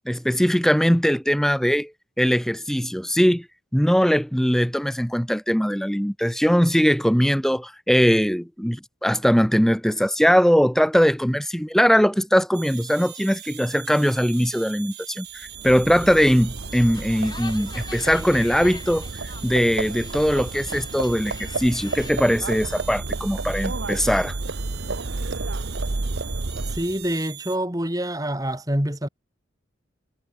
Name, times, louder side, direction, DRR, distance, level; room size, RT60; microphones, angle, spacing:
voice 1, 0.1-1.9 2.2-3.5 3.7-19.1 19.4-24.4, equal, ahead, 1.1 m, -20 dB
sound 1, 12.5-27.6, right 14 dB, 55° right, 7.5 m, -41 dB
Livestock farm animals working animals, 15.4-27.1, right 2 dB, 75° right, 1.1 m, -31 dB
sound 2, 16.4-22.1, left 4 dB, 20° left, 4.9 m, -44 dB
voice 2, 26.7-29.1, right 1 dB, 20° right, 3.6 m, -26 dB
head